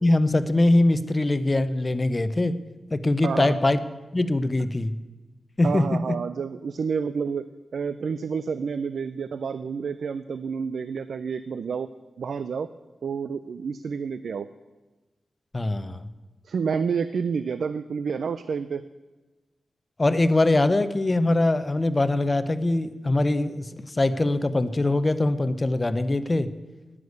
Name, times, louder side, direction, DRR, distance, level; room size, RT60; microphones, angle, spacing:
voice 1, 0.0-2.5 2.9-3.8 4.1-4.9 5.6-6.2 15.5-16.1 20.0-26.5, left 2 dB, 30° left, 13 dB, 0.7 m, -22 dB
voice 2, 3.2-3.6 5.6-7.4 7.7-11.9 12.2-12.7 13.0-14.5 16.4-18.8, right 6 dB, 85° right, 14 dB, 0.4 m, -29 dB
10.5 x 9.8 x 8.0 m, 1.2 s
wide cardioid pair, 85°, 0 cm